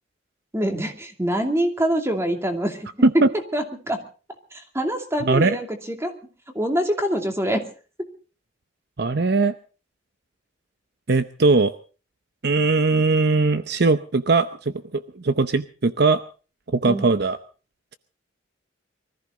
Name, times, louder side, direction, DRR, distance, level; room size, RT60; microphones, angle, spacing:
voice 1, 0.5-2.9 3.5-4.0 4.5-6.1 6.5-7.7 16.8-17.1, equal, 15° right, 4 dB, 2.6 m, -25 dB
voice 2, 5.2-5.6 9.0-9.5 11.1-11.7 12.4-16.2 16.7-17.4, right 3 dB, 55° right, 11 dB, 0.7 m, -20 dB
24.0 x 14.5 x 3.9 m, 0.37 s
head